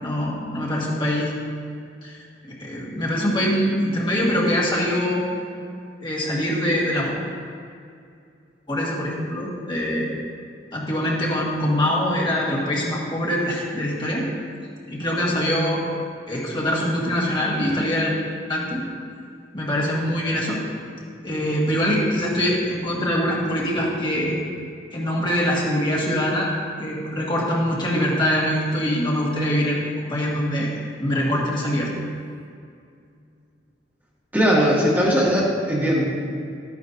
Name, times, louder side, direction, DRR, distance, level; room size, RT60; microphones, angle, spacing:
voice 1, 0.0-1.3 2.0-2.2 2.4-5.2 6.0-7.1 8.7-10.1 10.7-14.2 14.9-15.8 16.3-18.1 18.5-18.8 19.5-20.6 21.2-24.4 24.9-26.5 26.8-30.7 31.0-31.9, equal, 25° left, -5 dB, 1.7 m, -23 dB
voice 2, 34.3-36.0, equal, 10° right, -6 dB, 1.6 m, -19 dB
13.0 x 9.6 x 2.7 m, 2.4 s
head